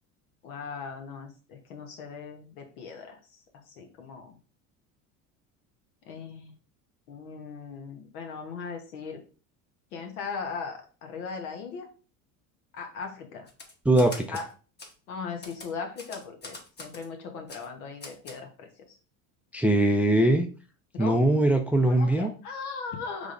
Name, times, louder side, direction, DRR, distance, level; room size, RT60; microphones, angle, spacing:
voice 1, 0.4-3.2 3.7-4.4 6.1-6.5 7.1-9.2 9.9-11.9 12.7-13.5 14.3-14.5 15.1-19.0 20.9-21.2 21.9-23.3, left 5 dB, 85° left, 4 dB, 1.2 m, -38 dB
Typewriter, 13.5-14.5 14.8-14.9 15.4-17.1 17.5-17.7 18.0-18.4, left 2 dB, 25° left, 1.1 m, -43 dB
voice 2, 13.9-14.4 19.5-20.5 21.0-22.3, right 1 dB, 5° right, 6 dB, 0.3 m, -21 dB
5.1 x 3.4 x 2.5 m, 0.37 s
hypercardioid pair, 85°, 43 cm